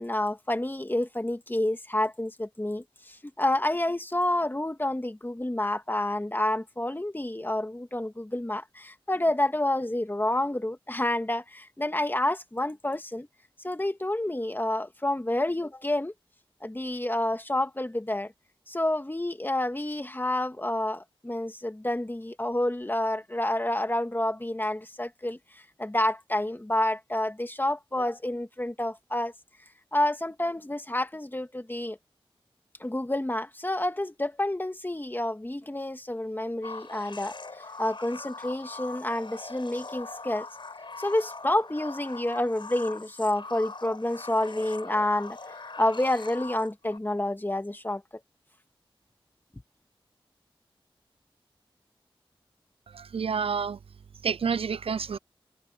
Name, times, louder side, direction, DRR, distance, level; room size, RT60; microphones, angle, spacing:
voice 1, 0.0-13.3 13.6-16.1 16.6-18.3 18.7-25.4 25.8-29.3 29.9-32.0 32.8-40.5 41.0-45.4 45.8-48.0, left 1 dB, 20° left, 2.2 m, -29 dB
sound 1, 36.6-47.0, left 3 dB, 60° left, 5.3 m, -42 dB
voice 2, 52.9-53.8 54.2-55.2, right 6 dB, 85° right, 0.5 m, -29 dB
wide cardioid pair, 50°, 9 cm